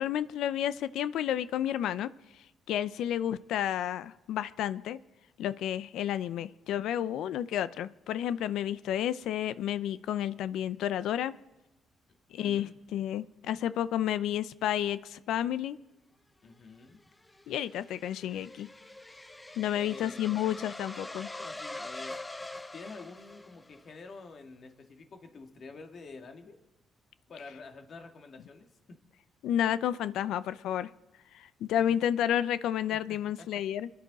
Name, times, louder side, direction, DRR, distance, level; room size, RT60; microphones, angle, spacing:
voice 1, 0.0-2.1 2.7-5.0 5.4-11.3 12.3-15.8 17.5-18.7 19.6-21.3 29.4-30.9 31.3-33.9, left 10 dB, 85° left, 15 dB, 0.5 m, -31 dB
voice 2, 12.4-12.8 16.4-17.0 19.8-20.6 21.4-22.2 22.7-26.6 27.3-29.0 31.9-32.0 32.9-33.5, left 4 dB, 50° left, 5 dB, 2.0 m, -48 dB
sound 1, 16.8-23.9, left 2 dB, 15° left, 0.6 m, -44 dB
24.0 x 10.5 x 4.1 m, 1.0 s
cardioid pair, 90°, 0 cm